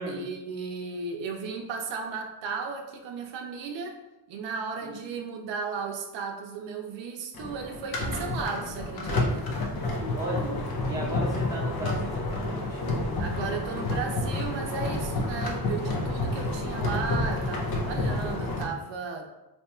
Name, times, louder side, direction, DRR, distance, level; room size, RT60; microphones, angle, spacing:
voice 1, 0.1-4.0 4.3-9.6 13.2-19.3, right 5 dB, 80° right, 2 dB, 0.6 m, -35 dB
sound 1, 7.3-18.6, left 2 dB, 55° left, 0.7 m, -29 dB
voice 2, 10.2-13.0, right 1 dB, 5° right, -7 dB, 0.9 m, -35 dB
2.8 x 2.3 x 4.2 m, 0.97 s
cardioid pair, 180°, 44 cm